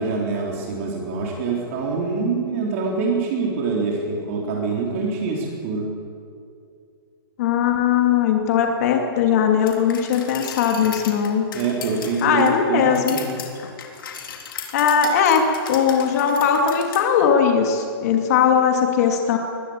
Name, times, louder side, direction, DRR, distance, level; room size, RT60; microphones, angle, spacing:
voice 1, 0.0-5.9 11.5-13.3, right 4 dB, 35° right, -1 dB, 3.7 m, -25 dB
voice 2, 7.4-11.5 12.2-13.2 14.7-19.4, left 7 dB, 40° left, 3 dB, 2.5 m, -19 dB
sound 1, 9.7-17.0, left 7 dB, 60° left, 3.7 m, -36 dB
22.0 x 16.5 x 8.9 m, 2.4 s
hypercardioid pair, 170°, 13 cm